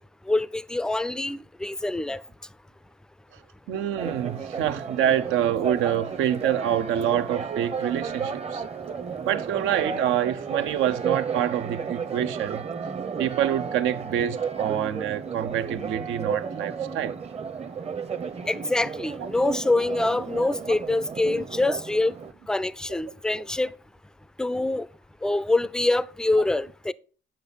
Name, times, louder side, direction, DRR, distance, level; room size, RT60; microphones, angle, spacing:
voice 1, 0.3-2.2 18.5-22.1 22.5-23.7 24.4-24.9 25.2-26.9, left 2 dB, 5° left, 0.3 m, -25 dB
voice 2, 3.7-8.6 9.2-12.6 13.2-17.1, right 10 dB, 90° right, 0.6 m, -26 dB
Church bell, 4.0-22.3, right 6 dB, 30° right, 0.7 m, -33 dB
8.6 x 6.0 x 4.0 m
cardioid pair, 90°, 20 cm